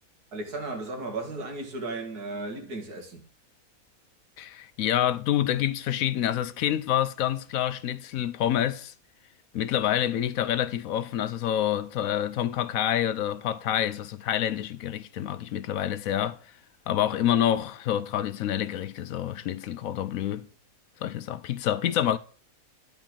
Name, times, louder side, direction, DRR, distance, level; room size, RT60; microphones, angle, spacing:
voice 1, 0.3-3.3, right 2 dB, 90° right, 2.5 m, -35 dB
voice 2, 4.4-8.9 9.5-16.4 16.9-20.5 21.0-22.2, left 11 dB, 70° left, 1.0 m, -27 dB
11.0 x 4.4 x 7.4 m
omnidirectional pair, 1.6 m